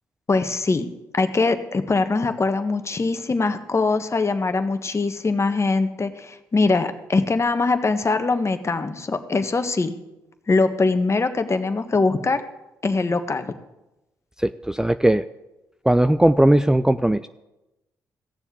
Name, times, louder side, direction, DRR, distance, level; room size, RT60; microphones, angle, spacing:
voice 1, 0.3-0.9 1.1-9.9 10.5-12.4 12.8-13.5, left 3 dB, 35° left, 9 dB, 1.5 m, -22 dB
voice 2, 14.4-15.2 15.8-17.3, right 1 dB, 5° right, 12 dB, 0.5 m, -18 dB
15.5 x 7.1 x 8.4 m, 0.97 s
hypercardioid pair, 45°, 8 cm